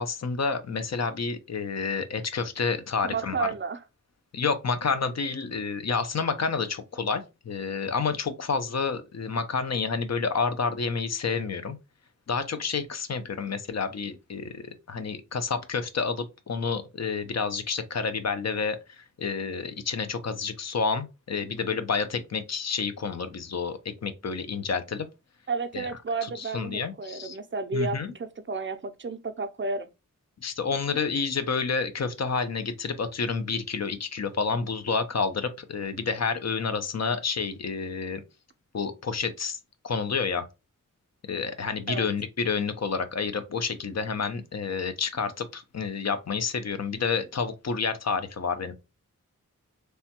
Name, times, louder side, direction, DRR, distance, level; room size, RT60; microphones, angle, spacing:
voice 1, 0.0-3.5 4.3-11.8 12.3-25.1 25.7-25.9 26.2-27.4 27.7-28.1 30.4-38.2 38.7-39.6 39.8-40.4 41.3-48.7, left 5 dB, 55° left, 0.5 m, -29 dB
voice 2, 3.0-3.8 25.5-29.9 41.9-42.1, right 4 dB, 40° right, 0.4 m, -32 dB
3.2 x 2.2 x 2.8 m
wide cardioid pair, 65°, 32 cm